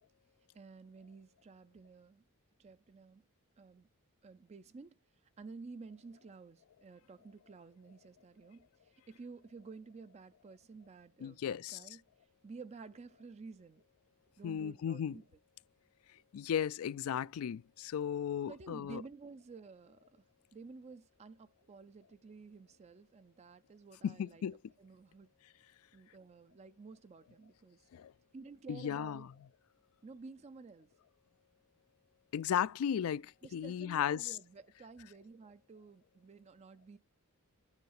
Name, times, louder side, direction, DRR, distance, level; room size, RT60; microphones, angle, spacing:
voice 1, 0.5-2.2 2.6-3.2 3.6-3.9 4.2-5.0 5.4-12.0 12.4-13.9 14.4-15.2 18.5-20.2 20.5-24.4 24.8-25.3 25.9-27.8 28.3-29.3 30.0-30.9 33.4-37.0, right 4 dB, 30° right, 0.4 m, -52 dB
voice 2, 11.2-11.8 14.4-15.2 16.3-19.0 24.0-24.6 27.9-28.1 28.7-29.3 32.3-34.4, left 9 dB, 65° left, 0.3 m, -35 dB
9.7 x 3.3 x 6.5 m
head